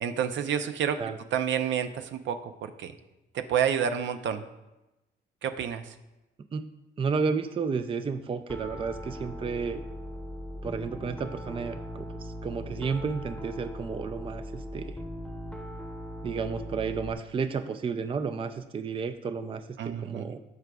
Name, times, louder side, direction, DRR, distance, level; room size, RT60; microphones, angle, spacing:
voice 1, 0.0-1.0 1.3-2.9 3.3-4.4 5.4-5.9 19.8-20.3, right 8 dB, 70° right, 8 dB, 0.6 m, -29 dB
voice 2, 7.0-9.8 10.6-14.9 16.2-20.4, right 5 dB, 25° right, 9 dB, 0.4 m, -32 dB
Piano, 8.5-17.1, equal, 5° left, 0.9 m, -39 dB
14.0 x 4.8 x 2.3 m, 1.0 s
cardioid pair, 90°, 20 cm